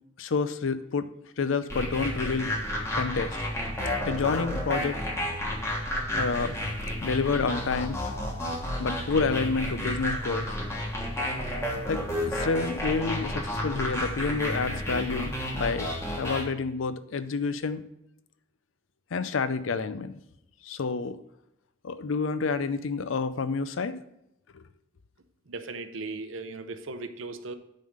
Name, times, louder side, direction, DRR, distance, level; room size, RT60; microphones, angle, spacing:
voice 1, 0.2-1.1 1.4-2.5 2.9-3.4 4.0-5.0 6.1-6.6 7.0-8.0 8.8-10.5 11.9-15.9 16.2-17.8 19.1-20.1 20.6-21.2 21.8-24.0 24.5-24.6, left 4 dB, 80° left, 13 dB, 0.5 m, -29 dB
sound 1, 1.7-16.4, left 1 dB, 15° left, 1.3 m, -31 dB
voice 2, 25.5-27.5, right 3 dB, 80° right, 9 dB, 0.7 m, -37 dB
9.0 x 3.7 x 6.4 m, 0.83 s
head